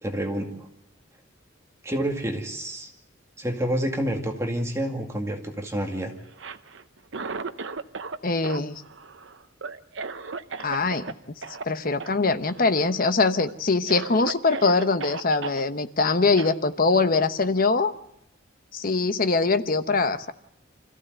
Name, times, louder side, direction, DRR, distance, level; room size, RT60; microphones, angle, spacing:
voice 1, 0.0-0.7 1.8-2.9 3.4-6.1, right 1 dB, 15° right, 2 dB, 2.2 m, -28 dB
Cough, 6.3-8.2 8.4-11.1 11.4-11.6 12.0-12.2 12.5-13.0 13.4-13.5 13.9-15.6 16.4-16.5, right 4 dB, 70° right, 0.8 m, -36 dB
voice 2, 8.2-8.7 10.6-11.0 11.6-17.9 18.7-20.3, left 3 dB, 45° left, 10 dB, 1.0 m, -23 dB
25.5 x 15.0 x 7.9 m, 0.82 s
head